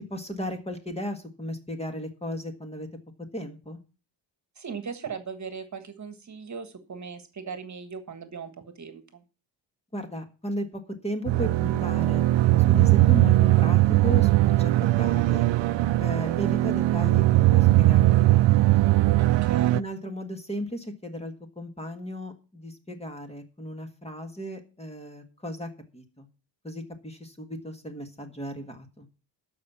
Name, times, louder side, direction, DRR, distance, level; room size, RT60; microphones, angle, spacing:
voice 1, 0.1-2.9 3.3-3.8 9.9-12.2 12.6-14.7 15.0-15.5 16.0-17.2 17.5-18.1 18.3-18.9 19.7-26.3 26.6-29.1, equal, 15° left, 6 dB, 1.6 m, -35 dB
voice 2, 4.6-9.2 19.2-19.8, right 6 dB, 40° right, 9 dB, 1.5 m, -38 dB
sound 1, 11.3-19.8, right 16 dB, 75° right, 0.6 m, -20 dB
13.0 x 5.4 x 7.0 m, 0.33 s
wide cardioid pair, 145°, 45 cm